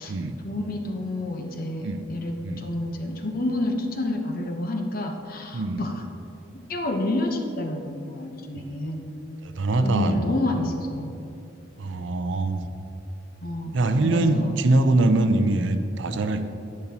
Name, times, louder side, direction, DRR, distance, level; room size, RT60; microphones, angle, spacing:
voice 1, 0.4-6.0 6.5-9.1 9.8-11.1 13.4-14.6, left 1 dB, 50° left, 4 dB, 0.9 m, -29 dB
voice 2, 5.5-5.9 8.5-8.8 9.4-10.4 11.8-12.6 13.7-16.4, right 2 dB, 75° right, 8 dB, 0.6 m, -23 dB
10.5 x 9.6 x 2.9 m, 2.8 s
head